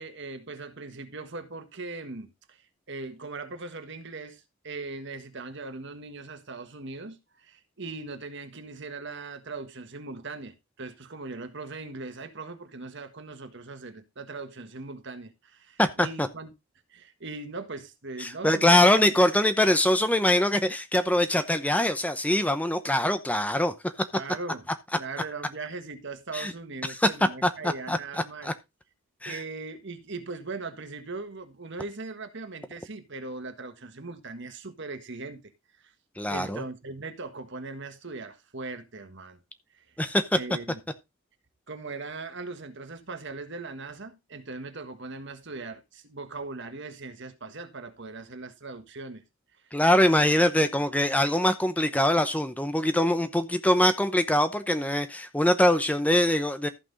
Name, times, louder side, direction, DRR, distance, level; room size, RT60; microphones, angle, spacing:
voice 1, 0.0-16.5 16.9-18.8 24.1-24.6 24.9-28.5 29.2-35.5 35.8-35.9 36.3-39.4 39.7-40.0 40.3-40.8 41.7-49.2 49.6-49.7, right 3 dB, 60° right, 1.6 m, -39 dB
voice 2, 15.8-16.3 18.2-23.9 26.3-26.5 26.9-27.1 27.4-28.0 28.4-28.5 29.2-29.4 36.2-36.6 40.0-40.4 49.7-56.7, left 1 dB, 5° left, 0.8 m, -23 dB
14.0 x 6.0 x 4.0 m
head